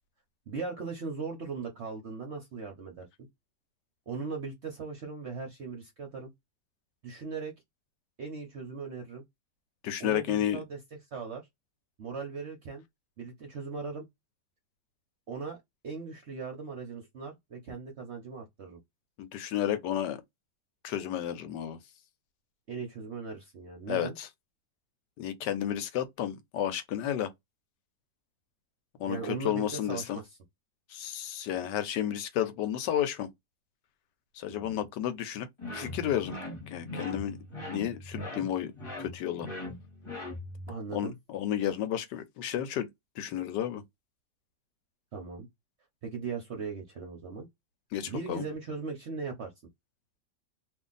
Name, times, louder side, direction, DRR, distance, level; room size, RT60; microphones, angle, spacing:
voice 1, 0.5-3.1 4.1-6.3 7.0-7.5 8.2-9.2 10.0-10.8 11.1-11.4 12.0-12.8 13.2-14.1 15.3-15.6 15.8-18.8 22.7-24.1 29.1-30.4 34.5-34.8 40.7-41.1 45.1-45.5 46.0-47.5 48.1-49.5, right 5 dB, 55° right, 0.7 m, -38 dB
voice 2, 9.8-10.6 19.2-20.2 20.8-21.8 23.9-24.3 25.2-27.3 29.0-30.2 30.9-33.3 34.4-35.5 35.7-36.4 36.7-37.4 37.6-38.7 39.0-39.5 40.9-42.9 43.2-43.8 47.9-48.4, left 11 dB, 75° left, 1.2 m, -32 dB
sound 1, 35.6-40.7, left 1 dB, 20° left, 1.1 m, -40 dB
2.7 x 2.5 x 3.8 m
omnidirectional pair, 1.9 m